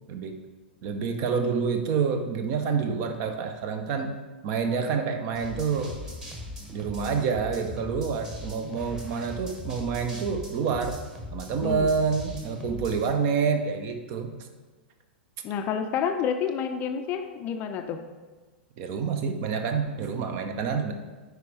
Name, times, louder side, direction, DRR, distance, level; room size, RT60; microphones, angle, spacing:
voice 1, 0.1-0.4 0.8-4.2 4.4-5.9 6.7-11.0 11.3-14.4 18.8-20.9, right 6 dB, 40° right, 6 dB, 0.8 m, -28 dB
sound 1, 5.3-13.1, left 1 dB, 10° right, 1.3 m, -39 dB
voice 2, 15.4-18.0, left 7 dB, 30° left, 7 dB, 0.5 m, -29 dB
9.3 x 4.8 x 3.3 m, 1.3 s
figure-of-eight pair, 100°, 6 cm